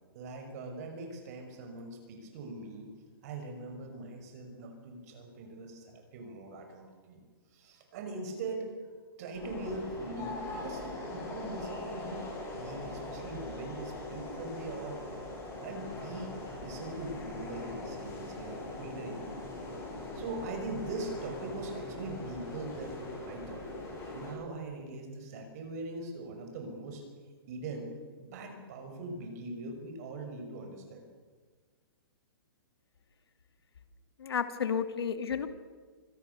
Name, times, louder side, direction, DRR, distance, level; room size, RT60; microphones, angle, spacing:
voice 1, 0.1-2.9 3.2-7.2 7.5-8.7 9.2-12.3 12.5-15.0 15.6-16.3 16.6-19.3 20.1-23.0 23.3-23.7 24.1-27.0 27.5-27.9 28.2-31.0, right 2 dB, 40° right, 4 dB, 5.7 m, -41 dB
sound 1, 9.3-24.3, left 2 dB, 20° left, 7.5 m, -41 dB
voice 2, 34.2-35.5, left 7 dB, 90° left, 9 dB, 2.4 m, -32 dB
25.0 x 18.5 x 6.9 m, 1.5 s
hypercardioid pair, 160°, 13 cm